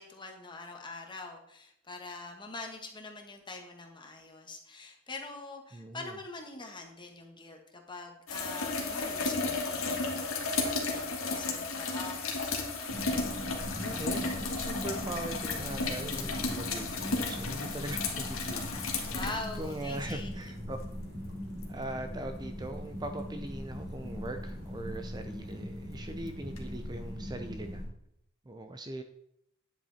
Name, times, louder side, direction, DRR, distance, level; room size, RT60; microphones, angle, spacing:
voice 1, 0.0-12.4 19.1-20.3, left 3 dB, 25° left, 2 dB, 1.6 m, -44 dB
voice 2, 5.7-6.2 13.7-19.2 19.5-20.8 21.7-27.8 28.5-29.0, right 1 dB, 20° right, 7 dB, 0.6 m, -41 dB
sound 1, 8.3-20.1 21.6-21.7 26.6-26.7, left 3 dB, 70° left, 1.9 m, -33 dB
sound 2, 12.9-27.9, left 1 dB, 55° right, 3.6 m, -40 dB
10.5 x 7.9 x 4.2 m, 0.76 s
head